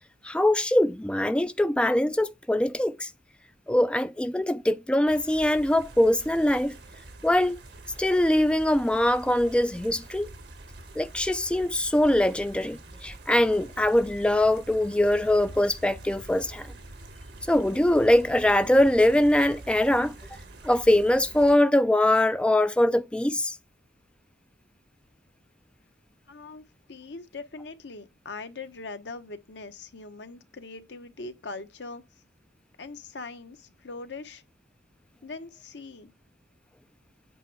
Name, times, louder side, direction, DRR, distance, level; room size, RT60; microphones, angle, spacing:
voice 1, 0.2-3.1 3.7-6.7 7.2-7.6 8.0-10.3 11.0-16.7 17.5-20.1 20.6-23.6, left 1 dB, 5° left, 0.3 m, -22 dB
sound 1, 5.1-21.6, right 2 dB, 75° right, 1.4 m, -46 dB
voice 2, 26.3-32.0 32.8-34.4 35.2-36.1, left 3 dB, 85° left, 0.9 m, -41 dB
8.3 x 4.3 x 4.5 m
head